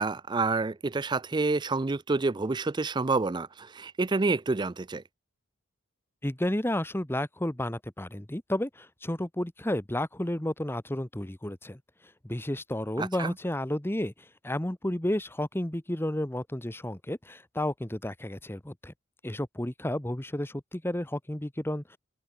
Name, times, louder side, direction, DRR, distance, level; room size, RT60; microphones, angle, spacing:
voice 1, 0.0-5.0 13.0-13.3, right 3 dB, 20° right, 0.4 m, -28 dB
voice 2, 6.2-11.8 12.2-18.9 19.2-22.0, left 1 dB, 10° left, 1.1 m, -32 dB
open air
head